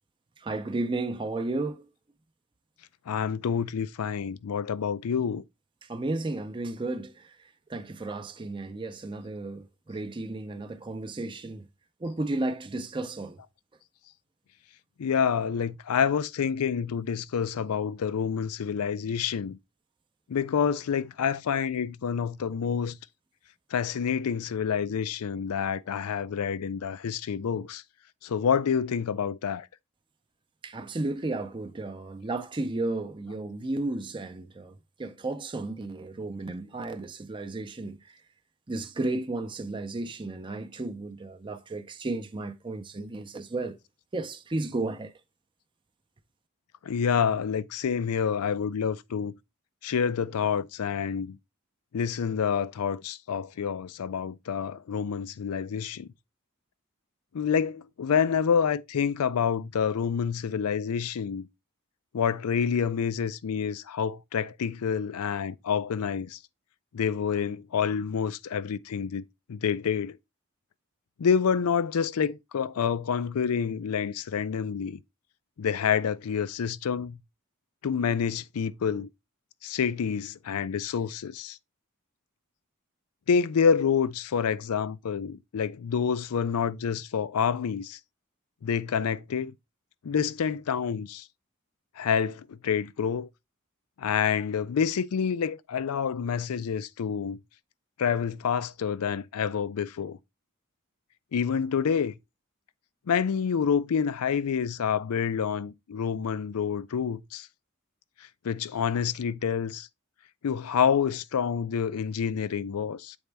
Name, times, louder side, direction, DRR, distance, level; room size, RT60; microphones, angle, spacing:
voice 1, 0.4-1.9 5.8-7.4 7.7-11.6 12.0-13.4 30.6-34.7 35.0-38.0 38.7-43.8 44.1-45.1, right 2 dB, 20° right, 0.5 m, -33 dB
voice 2, 3.1-5.4 15.0-19.6 20.3-23.0 23.7-27.8 28.2-29.7 46.8-49.3 49.8-51.4 51.9-56.1 57.3-61.5 62.1-66.4 66.9-69.2 69.5-70.2 71.2-75.0 75.6-77.2 77.8-79.1 79.6-81.6 83.3-88.0 88.6-89.5 90.0-91.3 92.0-93.3 94.0-97.4 98.0-100.2 101.3-102.1 103.1-107.5 108.4-109.9 110.4-113.2, left 7 dB, 80° left, 0.4 m, -28 dB
8.0 x 4.1 x 3.4 m
head